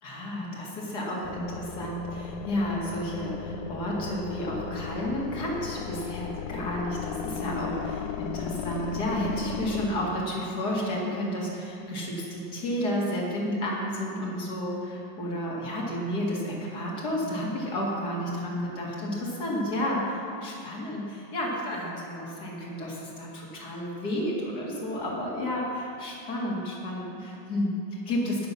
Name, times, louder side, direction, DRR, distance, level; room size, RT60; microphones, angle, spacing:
voice 1, 0.0-28.5, equal, 60° left, -3 dB, 2.8 m, -31 dB
sound 1, 1.2-9.9, left 8 dB, 80° left, 1.3 m, -36 dB
20.0 x 7.0 x 6.0 m, 2.6 s
omnidirectional pair, 2.0 m